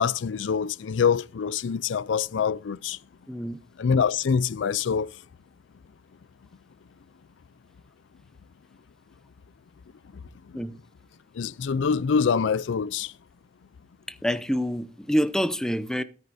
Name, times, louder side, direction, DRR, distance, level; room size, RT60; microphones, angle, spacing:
voice 1, 0.0-3.0 3.8-5.1 11.4-13.1, left 6 dB, 75° left, 0.4 m, -25 dB
voice 2, 3.3-3.6 10.5-10.7 14.1-16.0, equal, 5° left, 0.7 m, -27 dB
13.5 x 13.0 x 2.7 m
head